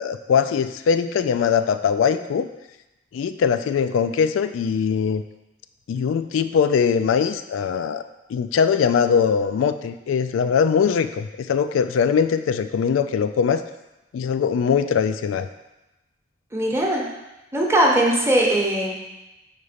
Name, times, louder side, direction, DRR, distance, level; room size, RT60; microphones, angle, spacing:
voice 1, 0.0-2.5 3.1-5.2 5.9-8.0 8.3-13.6 14.1-15.5, left 6 dB, 80° left, 10 dB, 0.3 m, -21 dB
voice 2, 16.5-17.0 17.5-19.0, right 1 dB, 15° right, -2 dB, 0.9 m, -20 dB
4.7 x 4.1 x 5.0 m, 0.99 s
head